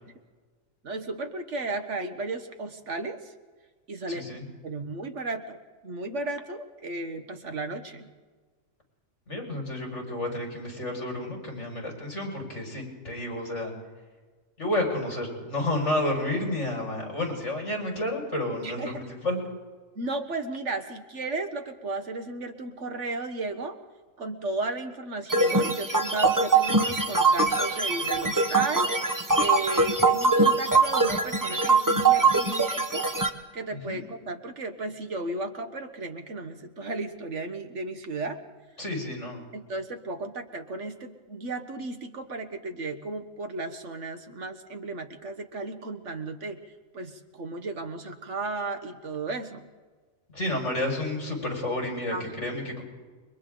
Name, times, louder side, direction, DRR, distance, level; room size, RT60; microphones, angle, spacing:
voice 1, 0.8-3.2 3.9-5.6 5.8-8.1 18.6-19.0 19.9-23.8 24.2-28.9 29.4-33.1 33.5-38.4 39.5-46.6 46.9-49.7 52.1-52.6, right 2 dB, 60° right, 7 dB, 1.5 m, -34 dB
voice 2, 4.1-4.4 9.3-13.7 14.6-19.4 33.7-34.0 38.8-39.4 50.3-52.8, left 1 dB, 60° left, -1 dB, 6.0 m, -30 dB
sound 1, 25.3-33.3, right 3 dB, 15° right, 1.2 m, -23 dB
29.0 x 23.5 x 3.9 m, 1.4 s
omnidirectional pair, 1.4 m